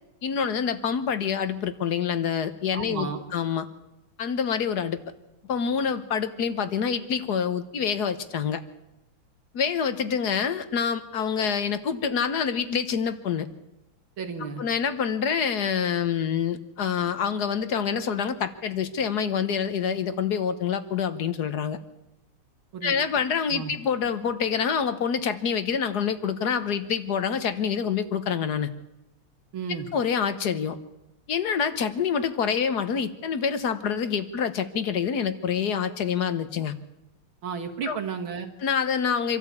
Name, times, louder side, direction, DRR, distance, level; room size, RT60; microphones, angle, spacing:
voice 1, 0.2-3.7 4.2-5.0 5.5-8.6 9.5-13.5 14.6-21.8 22.8-28.7 29.9-30.8 31.3-36.7 37.9-38.0 38.6-39.4, left 7 dB, 55° left, 11 dB, 1.4 m, -26 dB
voice 2, 2.7-3.2 14.2-14.6 22.7-23.0 23.5-23.7 29.5-29.9 37.4-38.5, right 6 dB, 70° right, 4 dB, 2.7 m, -33 dB
25.5 x 13.0 x 8.4 m, 0.94 s
omnidirectional pair, 2.4 m